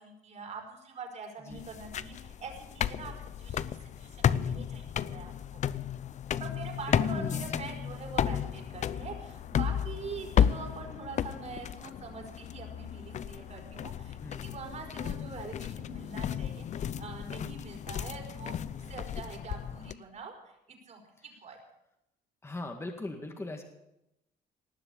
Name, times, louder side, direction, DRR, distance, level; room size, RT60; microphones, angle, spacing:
voice 1, 0.0-5.6 6.4-21.6, right 4 dB, 45° right, 2 dB, 4.5 m, -44 dB
sound 1, 1.5-19.9, left 9 dB, 45° left, 0.6 m, -33 dB
voice 2, 6.8-7.7 14.2-14.6 18.6-19.3 22.4-23.6, left 2 dB, 15° left, 4 dB, 1.9 m, -41 dB
19.0 x 6.8 x 9.9 m, 0.86 s
cardioid pair, 110°, 17 cm